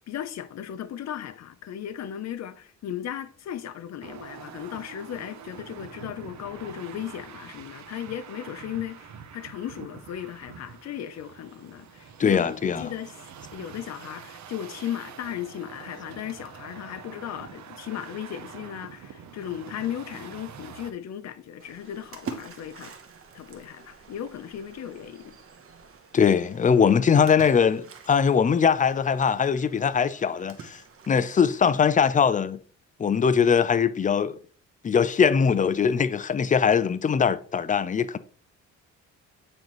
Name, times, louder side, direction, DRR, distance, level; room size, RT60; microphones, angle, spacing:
voice 1, 0.1-13.2 13.5-22.9 23.3-25.4, left 10 dB, 60° left, 0.8 m, -36 dB
sound 1, 4.0-20.9, right 7 dB, 65° right, 0.9 m, -45 dB
voice 2, 12.2-12.9 26.1-30.8 31.1-32.6 33.0-34.4 34.8-38.2, left 6 dB, 25° left, 0.5 m, -21 dB
Splash splatter, 21.6-31.6, right 5 dB, 45° right, 1.1 m, -46 dB
8.7 x 3.9 x 3.1 m
cardioid pair, 90°, 30 cm